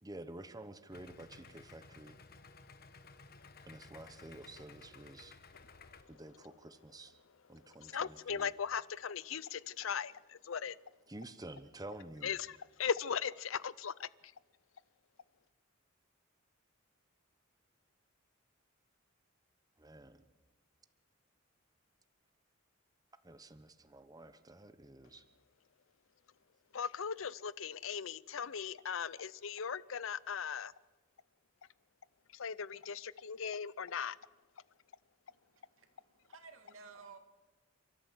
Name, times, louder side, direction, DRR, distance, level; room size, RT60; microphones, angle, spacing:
voice 1, 0.0-2.1 3.7-5.3 6.1-7.1 7.5-8.5 11.1-12.3 19.8-20.2 23.2-25.2, right 1 dB, 20° right, 1.0 m, -50 dB
Idling, 0.9-6.0, left 4 dB, 50° left, 1.3 m, -56 dB
voice 2, 7.8-10.8 12.2-14.1 26.7-30.7 32.3-34.2, left 7 dB, 70° left, 0.6 m, -38 dB
voice 3, 35.3-37.2, right 5 dB, 75° right, 2.4 m, -56 dB
29.5 x 13.0 x 8.3 m
head